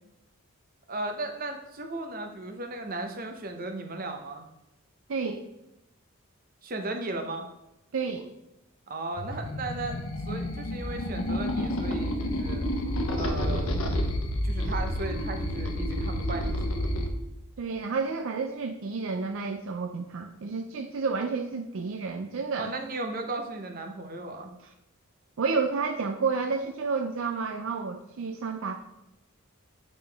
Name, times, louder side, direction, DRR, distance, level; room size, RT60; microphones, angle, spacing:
voice 1, 0.9-4.4 6.6-7.5 8.9-10.0 10.3-12.6 13.1-13.7 14.4-16.9 22.6-24.5, right 2 dB, 40° right, 5 dB, 0.8 m, -36 dB
voice 2, 5.1-5.4 7.9-8.3 17.6-22.7 25.4-28.7, right 4 dB, 65° right, 5 dB, 0.4 m, -30 dB
sound 1, 9.2-17.1, equal, 80° left, 0.9 m, -29 dB
8.6 x 5.2 x 3.4 m, 0.90 s
head